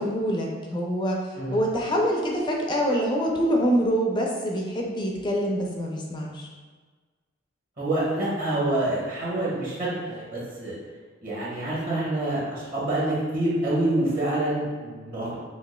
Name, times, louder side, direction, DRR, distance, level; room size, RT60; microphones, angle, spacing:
voice 1, 0.0-1.2 1.5-6.5, equal, 25° left, -1 dB, 0.4 m, -25 dB
voice 2, 7.8-10.7 11.2-15.4, right 1 dB, 45° right, -8 dB, 1.4 m, -27 dB
5.8 x 2.5 x 2.2 m, 1.4 s
head